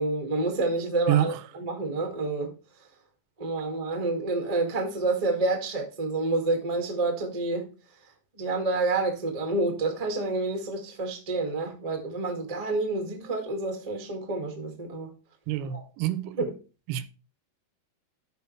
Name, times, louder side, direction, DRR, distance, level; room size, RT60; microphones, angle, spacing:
voice 1, 0.0-2.5 3.4-7.6 8.4-15.1 15.7-15.8 16.4-16.5, right 2 dB, 45° right, 0.4 m, -28 dB
voice 2, 1.1-1.4 15.5-16.5 16.9-17.1, right 12 dB, 85° right, 2.6 m, -27 dB
13.0 x 5.2 x 3.2 m
omnidirectional pair, 4.6 m